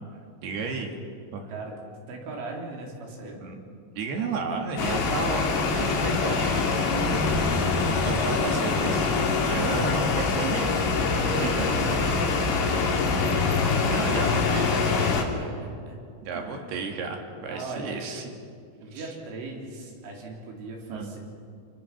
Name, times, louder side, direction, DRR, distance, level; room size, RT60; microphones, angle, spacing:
voice 1, 0.4-1.0 1.3-1.5 3.4-3.6 4.0-9.2 9.5-10.8 11.1-11.7 13.8-14.9 16.2-18.3 18.9-19.1 20.9-21.1, right 4 dB, 60° right, 3 dB, 3.6 m, -33 dB
voice 2, 2.1-3.4 11.2-15.1 15.4-16.0 16.3-16.6 17.5-17.9 18.8-21.2, right 2 dB, 75° right, -1 dB, 5.9 m, -38 dB
sound 1, 4.8-15.2, left 4 dB, 75° left, 5.0 m, -24 dB
29.5 x 21.0 x 5.9 m, 2.3 s
omnidirectional pair, 5.6 m